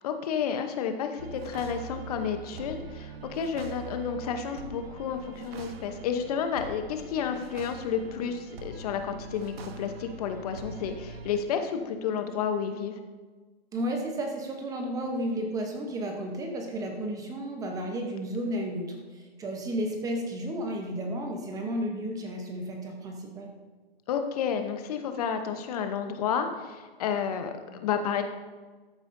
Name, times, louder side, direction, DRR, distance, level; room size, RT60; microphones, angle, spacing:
voice 1, 0.0-13.0 24.1-28.2, left 7 dB, 40° left, 7 dB, 0.8 m, -31 dB
sound 1, 1.2-11.4, right 4 dB, 70° right, 1.1 m, -43 dB
voice 2, 13.7-23.5, right 1 dB, 10° right, 2 dB, 0.8 m, -33 dB
13.5 x 9.0 x 2.6 m, 1.3 s
hypercardioid pair, 145°, 31 cm